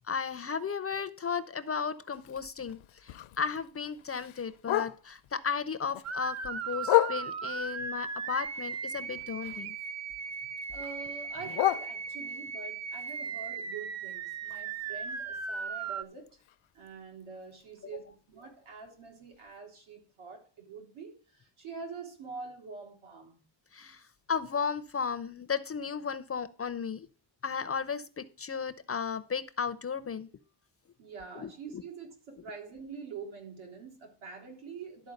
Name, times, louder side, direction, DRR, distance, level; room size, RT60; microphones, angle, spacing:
voice 1, 0.0-9.8 17.8-18.0 23.7-27.1 27.4-30.3 31.3-31.8, left 6 dB, 30° left, 13 dB, 0.4 m, -35 dB
Bark, 2.1-5.3 5.7-7.6 8.1-9.9 10.2-12.5 12.9-16.9 17.2-17.3 17.6-18.0 18.4-18.5 18.9-19.0 19.5-19.6, left 15 dB, 80° left, 0.6 m, -34 dB
sound 1, 6.0-16.0, right 5 dB, 35° right, 0.5 m, -37 dB
voice 2, 10.7-16.4 16.7-23.4 31.0-35.1, right 5 dB, 85° right, 0 dB, 3.4 m, -45 dB
11.5 x 4.5 x 6.4 m, 0.37 s
wide cardioid pair, 165°, 47 cm